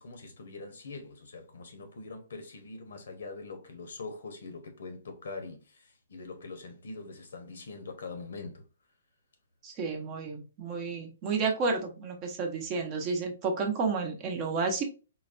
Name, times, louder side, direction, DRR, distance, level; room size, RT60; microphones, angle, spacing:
voice 1, 0.0-8.6, left 3 dB, 80° left, 0.9 m, -43 dB
voice 2, 9.6-14.9, right 4 dB, 30° right, 0.8 m, -31 dB
3.9 x 2.2 x 2.5 m
hypercardioid pair, 150°, 0 cm